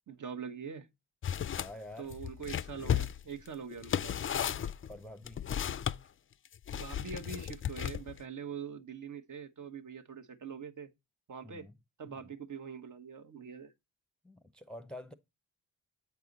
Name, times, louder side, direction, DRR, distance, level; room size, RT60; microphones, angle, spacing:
voice 1, 0.1-0.9 2.0-4.3 6.7-10.9 11.3-11.7 12.0-13.7, right 6 dB, 50° right, 1.1 m, -43 dB
sound 1, 1.2-1.7 2.1-6.0 6.7-8.2, left 9 dB, 35° left, 0.4 m, -34 dB
voice 2, 1.5-2.1 4.9-5.4 11.4-11.7 12.1-12.2 14.2-15.1, left 1 dB, ahead, 0.7 m, -48 dB
8.2 x 4.6 x 4.0 m
supercardioid pair, 50°, 38 cm